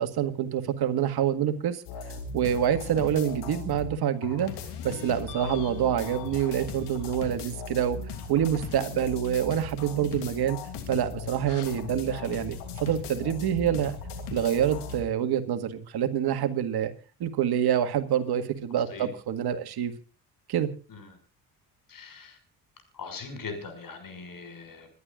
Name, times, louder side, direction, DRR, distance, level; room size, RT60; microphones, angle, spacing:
voice 1, 0.0-4.5 4.8-8.0 8.3-10.6 10.9-13.9 14.3-16.9 17.2-19.9 20.5-20.7, right 9 dB, 65° right, 10 dB, 1.9 m, -27 dB
sound 1, 1.9-4.0 4.2-15.0, left 4 dB, 80° left, 3.0 m, -38 dB
voice 2, 21.9-22.4 22.9-24.9, left 4 dB, 50° left, 7 dB, 6.3 m, -41 dB
27.5 x 11.5 x 2.5 m, 0.36 s
supercardioid pair, 60°, 42 cm